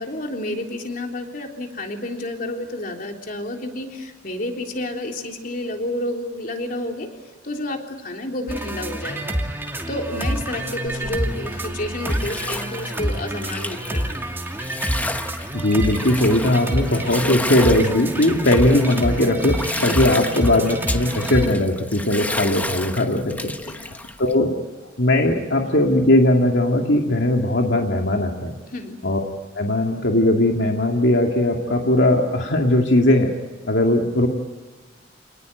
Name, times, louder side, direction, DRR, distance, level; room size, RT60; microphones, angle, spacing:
voice 1, 0.0-7.1 7.4-9.4 9.9-14.1 19.8-20.0 23.7-23.8 28.7-29.0, left 1 dB, 50° left, 2 dB, 3.7 m, -30 dB
sound 1, 8.5-21.5, right 1 dB, 10° right, 2.5 m, -27 dB
Bathtub (filling or washing), 10.9-24.3, left 2 dB, 10° left, 1.1 m, -32 dB
voice 2, 15.5-23.5 23.8-23.9 24.2-24.5 25.0-28.5 29.0-29.2 29.5-33.3 33.6-34.3, left 1 dB, 75° left, 1 dB, 2.3 m, -19 dB
28.5 x 20.0 x 9.3 m, 1.4 s
head